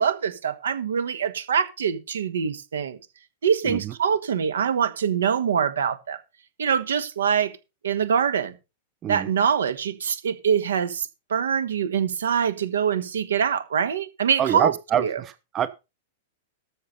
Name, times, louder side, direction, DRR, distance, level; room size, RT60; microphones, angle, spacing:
voice 1, 0.0-3.0 3.4-6.2 6.6-7.5 7.8-8.5 9.1-14.7 15.0-15.2, right 7 dB, 70° right, 1.5 m, -24 dB
voice 2, 14.4-15.7, right 9 dB, 30° right, 0.8 m, -26 dB
13.5 x 6.5 x 5.4 m
figure-of-eight pair, 95°, 0 cm